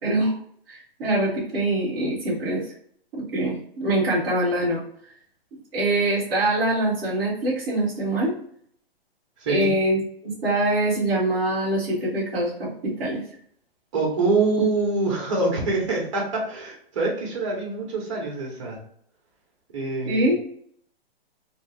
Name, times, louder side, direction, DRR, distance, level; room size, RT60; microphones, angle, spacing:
voice 1, 0.0-0.4 0.7-2.7 3.1-4.8 5.7-8.3 9.5-13.2 20.0-20.4, right 1 dB, 5° right, -17 dB, 0.5 m, -24 dB
voice 2, 9.4-9.7 13.9-18.8 19.7-20.3, right 3 dB, 30° right, -1 dB, 1.0 m, -25 dB
3.5 x 2.5 x 3.3 m, 0.66 s
hypercardioid pair, 170°, 31 cm